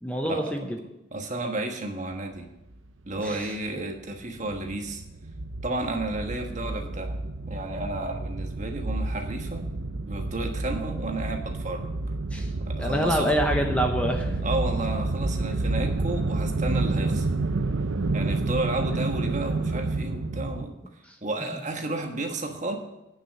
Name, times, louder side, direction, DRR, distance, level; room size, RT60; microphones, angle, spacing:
voice 1, 0.0-0.8 3.2-3.5 12.3-12.5 12.8-14.4 18.9-19.0 21.1-21.2, equal, 5° left, 2 dB, 0.7 m, -26 dB
voice 2, 1.1-2.5 3.1-5.0 5.6-7.1 7.5-9.6 10.1-11.9 12.7-13.3 14.4-17.3 18.1-20.7 21.2-22.8, right 2 dB, 35° right, 4 dB, 1.3 m, -32 dB
sound 1, 4.1-20.7, right 2 dB, 75° right, 0.7 m, -29 dB
9.8 x 6.3 x 8.2 m, 0.93 s
head